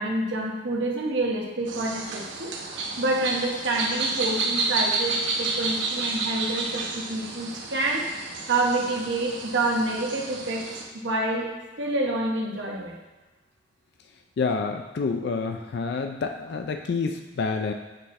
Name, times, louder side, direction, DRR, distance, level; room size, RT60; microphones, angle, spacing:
voice 1, 0.0-2.5 3.0-8.0 8.5-10.7 10.9-11.5 11.8-13.0, right 2 dB, 65° right, -1 dB, 1.0 m, -27 dB
sound 1, 1.7-10.8, right 3 dB, 90° right, 0.9 m, -30 dB
voice 2, 14.4-17.7, left 4 dB, 60° left, 5 dB, 0.4 m, -28 dB
7.6 x 4.2 x 3.2 m, 1.2 s
head